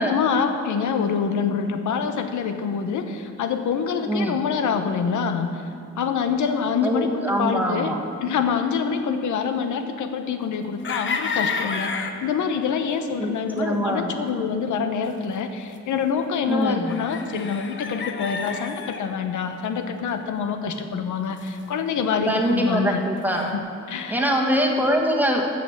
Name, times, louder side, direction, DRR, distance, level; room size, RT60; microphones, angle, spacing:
voice 1, 0.0-5.6 6.0-7.9 8.2-23.0 23.4-23.6 23.9-24.3, left 6 dB, 85° left, 7 dB, 0.9 m, -26 dB
voice 2, 4.1-4.4 6.8-8.0 13.2-14.1 16.5-16.9 22.3-23.5 24.1-25.5, equal, 5° right, 0 dB, 1.4 m, -23 dB
sound 1, 10.8-12.2 13.6-13.7 14.3-14.4 15.0-15.1 15.8-15.9 16.9-19.0 19.6-19.7 20.0-20.1 20.5-20.6 20.8-20.9 21.4-22.6 23.2-23.5, left 5 dB, 40° left, 0.8 m, -30 dB
13.5 x 6.0 x 7.8 m, 2.5 s
wide cardioid pair, 140°, 29 cm